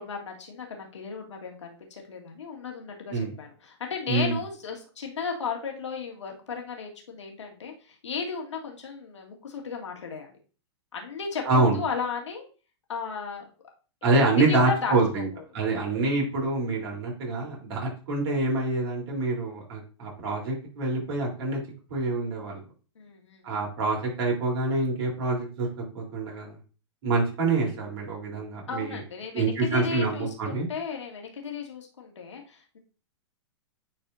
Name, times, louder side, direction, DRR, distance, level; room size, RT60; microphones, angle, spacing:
voice 1, 0.0-10.4 10.9-12.4 12.9-13.5 14.4-15.4 23.0-23.6 28.7-32.8, left 5 dB, 80° left, 1 dB, 1.9 m, -35 dB
voice 2, 4.1-4.4 11.5-11.8 14.0-15.3 15.5-21.6 21.9-22.6 23.4-25.7 25.9-26.6 27.0-29.0 29.3-30.7, right 3 dB, 60° right, -2 dB, 3.7 m, -26 dB
9.6 x 4.3 x 2.7 m, 0.37 s
hypercardioid pair, 115°, 15 cm